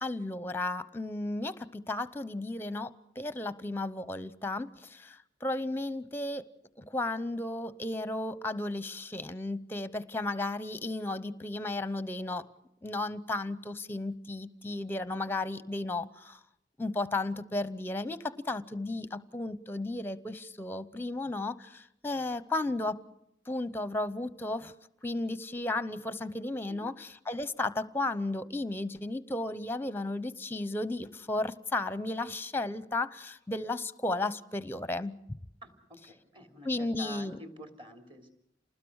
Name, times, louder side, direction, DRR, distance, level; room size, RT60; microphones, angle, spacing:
voice 1, 0.0-6.5 6.8-12.4 12.8-16.4 16.8-23.0 23.5-24.7 25.0-35.1 36.6-37.4, left 2 dB, 10° left, 15 dB, 0.8 m, -34 dB
voice 2, 36.0-38.3, equal, 30° right, 5 dB, 3.5 m, -48 dB
28.0 x 20.0 x 6.4 m, 0.77 s
head